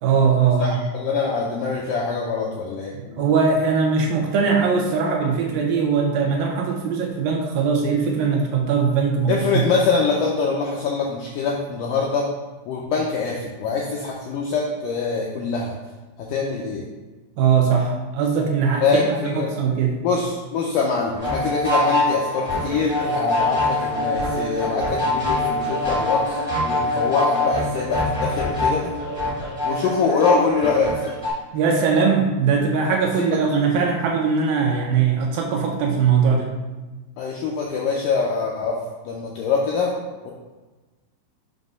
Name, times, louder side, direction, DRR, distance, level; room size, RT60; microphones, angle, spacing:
voice 1, 0.0-0.8 2.9-9.7 17.4-20.0 31.5-36.5, right 5 dB, 80° right, 1 dB, 2.2 m, -20 dB
voice 2, 0.9-3.2 9.3-12.3 12.7-15.8 16.3-16.9 18.8-19.5 20.0-28.9 29.6-31.1 33.2-33.3 37.2-38.8 39.1-39.9 40.3-40.4, left 4 dB, 85° left, -2 dB, 1.8 m, -24 dB
sound 1, 21.1-31.3, left 1 dB, 65° left, 0.3 m, -24 dB
7.3 x 2.9 x 5.3 m, 1.2 s
omnidirectional pair, 4.5 m